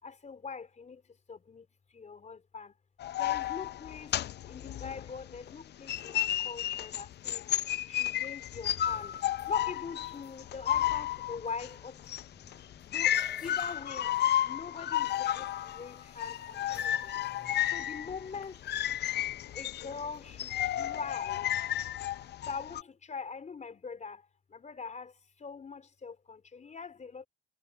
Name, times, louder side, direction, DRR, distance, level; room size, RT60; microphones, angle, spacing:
voice 1, 0.0-1.0 1.3-1.7 1.9-2.7 3.2-4.2 4.5-7.4 7.8-9.2 9.5-12.0 12.8-17.1 17.7-18.6 19.5-21.5 22.4-24.2 24.5-25.1 25.4-27.3, left 5 dB, 35° left, 3.7 m, -42 dB
sound 1, 3.0-5.5 5.9-22.8, left 12 dB, 60° left, 0.5 m, -32 dB
sound 2, 8.9-22.4, left 3 dB, 20° left, 4.4 m, -59 dB
cardioid pair, 90°, 20 cm